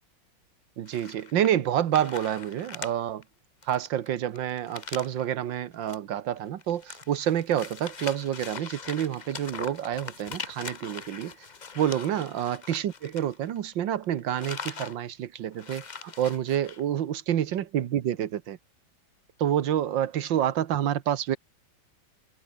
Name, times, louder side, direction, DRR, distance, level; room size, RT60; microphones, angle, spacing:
voice 1, 0.8-3.2 3.7-11.4 11.8-18.6 19.4-21.4, right 10 dB, 85° right, 1.8 m, -28 dB
sound 1, 0.9-1.7 1.9-2.9 3.2-3.3 3.6-5.2 5.7-6.0 6.3-13.7 14.0-15.0 15.2-15.3 15.5-16.8, left 5 dB, 35° left, 0.8 m, -41 dB
omnidirectional pair, 2.0 m